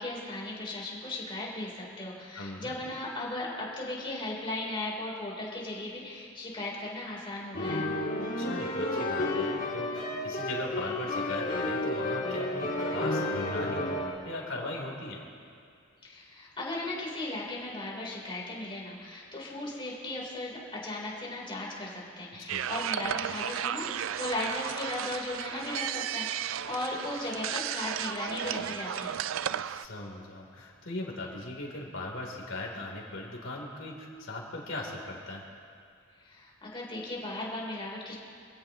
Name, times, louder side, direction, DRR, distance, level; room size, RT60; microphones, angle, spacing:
voice 1, 0.0-7.9 16.0-29.1 36.2-38.2, left 2 dB, 25° left, -4 dB, 3.6 m, -37 dB
voice 2, 2.3-2.8 8.4-13.8 14.2-15.2 22.3-22.7 29.6-35.5, left 2 dB, 70° left, -1 dB, 3.4 m, -39 dB
sound 1, 7.5-14.1, left 1 dB, 45° left, 2.1 m, -31 dB
sound 2, 22.5-29.9, right 9 dB, 75° right, 0.4 m, -34 dB
26.5 x 16.5 x 3.0 m, 2.3 s
head